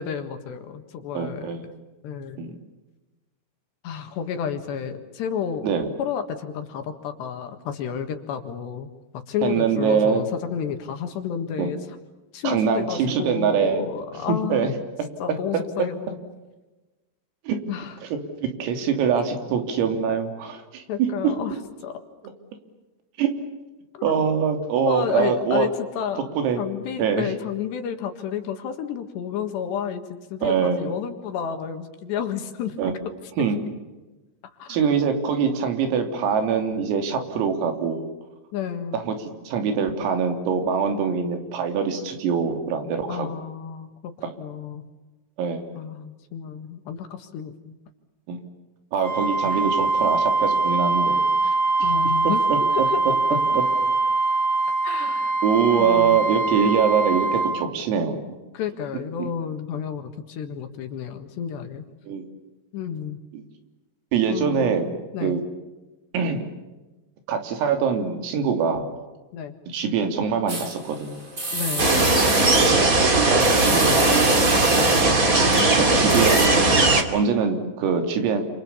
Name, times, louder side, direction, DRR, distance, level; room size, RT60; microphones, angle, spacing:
voice 1, 0.0-1.5 2.0-2.4 3.8-5.7 6.0-11.8 12.3-14.7 15.2-16.2 17.7-18.0 20.9-21.6 21.8-22.0 23.9-24.2 24.9-26.2 26.6-30.0 30.3-32.8 34.6-34.8 38.5-39.0 43.1-44.9 45.8-47.8 49.5-49.7 51.8-52.5 52.7-53.0 53.3-53.4 54.8-55.4 55.8-56.2 58.5-61.9 62.7-63.2 64.3-64.8 65.1-65.4 69.3-69.5 71.5-72.1 74.7-75.0, left 8 dB, 65° left, 7 dB, 3.5 m, -31 dB
voice 2, 1.2-1.7 2.4-2.6 5.6-5.9 9.4-10.2 11.6-11.7 12.4-13.8 14.5-14.7 17.5-17.6 18.0-21.3 23.2-23.3 24.0-25.7 26.4-26.6 27.0-27.3 30.4-30.9 32.8-33.0 33.4-33.6 34.7-38.1 38.9-43.3 45.4-45.8 48.3-48.4 48.9-51.5 51.8-51.9 52.5-52.6 53.6-53.7 55.4-58.4 59.2-59.3 62.0-62.2 63.3-63.5 64.1-64.9 65.2-65.4 66.1-66.5 67.3-69.0 69.7-71.2 72.4-72.7 73.3-74.2 75.7-76.5 77.1-78.5, right 6 dB, 85° right, 6 dB, 5.8 m, -24 dB
Wind instrument woodwind instrument, 49.0-57.6, right 3 dB, 30° left, 3.9 m, -22 dB
sound 1, 70.5-76.5, right 2 dB, 20° right, 3.4 m, -31 dB
sound 2, 71.8-77.0, right 2 dB, 35° right, 1.4 m, -18 dB
29.5 x 28.0 x 7.2 m, 1.1 s
omnidirectional pair, 5.9 m